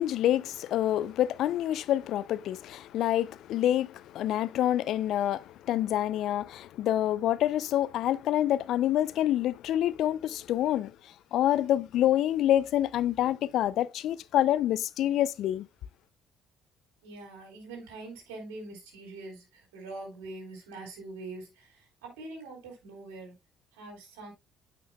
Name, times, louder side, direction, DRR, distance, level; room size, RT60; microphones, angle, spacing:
voice 1, 0.0-10.9 11.3-15.7, left 12 dB, 70° left, 0.4 m, -27 dB
voice 2, 17.0-23.3 23.7-24.3, right 2 dB, 90° right, 3.7 m, -44 dB
9.0 x 6.1 x 2.3 m
hypercardioid pair, 60°, 0 cm